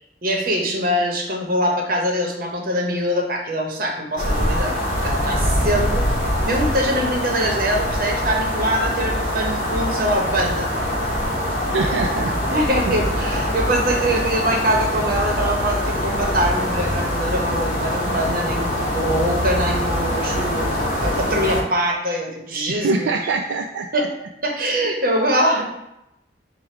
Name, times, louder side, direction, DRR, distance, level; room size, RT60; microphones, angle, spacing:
voice 1, 0.2-6.1 6.4-10.7 11.9-12.0 12.5-23.1 23.9-24.1 24.4-25.6, equal, 55° right, 0 dB, 0.9 m, -23 dB
sound 1, 4.2-21.6, equal, 50° left, 0.9 m, -23 dB
voice 2, 11.7-12.9 18.1-18.2 22.7-24.1, right 3 dB, 80° right, 4 dB, 0.3 m, -25 dB
4.9 x 2.3 x 4.3 m, 0.84 s
head